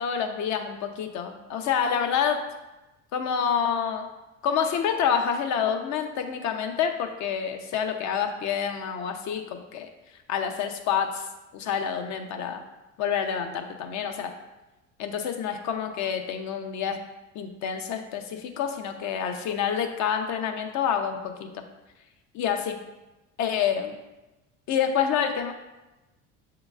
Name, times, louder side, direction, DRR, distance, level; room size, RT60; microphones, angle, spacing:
voice 1, 0.0-2.4 3.1-4.1 4.4-9.9 10.3-11.3 11.5-12.6 13.0-14.3 15.0-17.0 17.3-21.6 22.3-22.8 23.4-24.0 24.7-25.5, left 7 dB, 55° left, 6 dB, 0.7 m, -28 dB
7.1 x 2.9 x 2.3 m, 1.0 s
hypercardioid pair, 80°, 35 cm